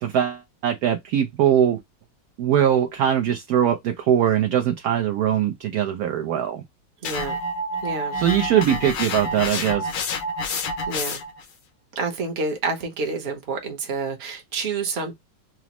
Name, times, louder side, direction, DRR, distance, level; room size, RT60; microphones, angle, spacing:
voice 1, 0.0-1.8 2.4-6.6 8.1-10.0, right 10 dB, 75° right, 0.9 m, -21 dB
sound 1, 7.0-11.4, left 2 dB, 75° left, 1.5 m, -28 dB
voice 2, 7.0-7.4 7.8-8.2 10.9-11.2 12.0-15.1, right 4 dB, 45° right, 0.9 m, -28 dB
6.0 x 2.0 x 2.9 m
omnidirectional pair, 2.0 m